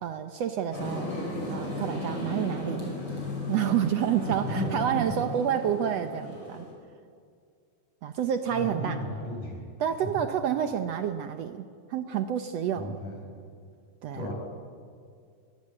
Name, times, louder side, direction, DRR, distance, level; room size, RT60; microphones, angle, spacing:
voice 1, 0.0-1.1 1.4-2.9 3.5-6.7 8.0-9.0 9.8-13.0 14.0-14.3, right 9 dB, 70° right, 8 dB, 1.7 m, -29 dB
sound 1, 0.7-6.7, left 2 dB, 40° left, 6.7 m, -36 dB
voice 2, 4.2-5.2 8.5-9.7 10.0-10.1 12.8-13.2 14.1-14.3, equal, 70° left, -1 dB, 7.4 m, -34 dB
22.5 x 20.5 x 8.7 m, 2.2 s
omnidirectional pair, 3.6 m